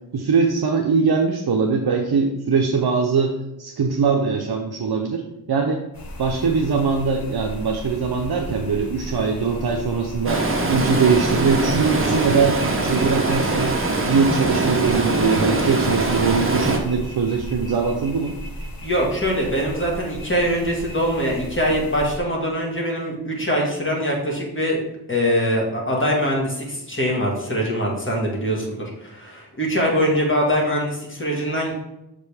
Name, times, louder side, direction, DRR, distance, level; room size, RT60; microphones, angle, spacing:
voice 1, 0.1-5.8 6.2-13.8 14.1-18.4, right 5 dB, 65° right, 1 dB, 0.7 m, -21 dB
sound 1, 5.9-22.2, equal, 55° left, 1.3 m, -36 dB
Stream, 10.3-16.8, right 2 dB, 30° right, 1.0 m, -22 dB
voice 2, 18.8-24.8 25.1-31.7, equal, 30° left, -2 dB, 1.7 m, -23 dB
6.5 x 5.1 x 3.5 m, 0.89 s
wide cardioid pair, 75°, 42 cm